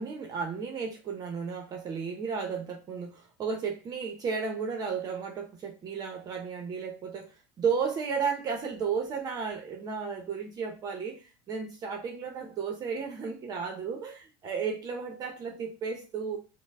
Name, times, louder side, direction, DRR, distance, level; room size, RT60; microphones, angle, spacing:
voice 1, 0.0-16.4, right 6 dB, 35° right, 0.7 m, -33 dB
4.3 x 2.1 x 3.5 m
supercardioid pair, 125°, 11 cm